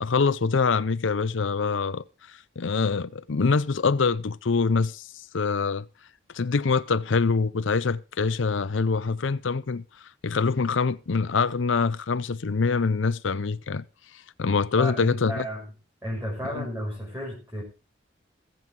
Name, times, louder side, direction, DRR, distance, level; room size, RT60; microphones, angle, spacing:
voice 1, 0.0-5.1 5.3-5.9 6.3-9.8 10.2-13.8 14.4-15.4 16.5-16.7, left 4 dB, 80° left, 0.6 m, -25 dB
voice 2, 14.8-15.7 16.0-17.6, left 1 dB, 10° right, 6.0 m, -33 dB
22.5 x 7.7 x 3.8 m
head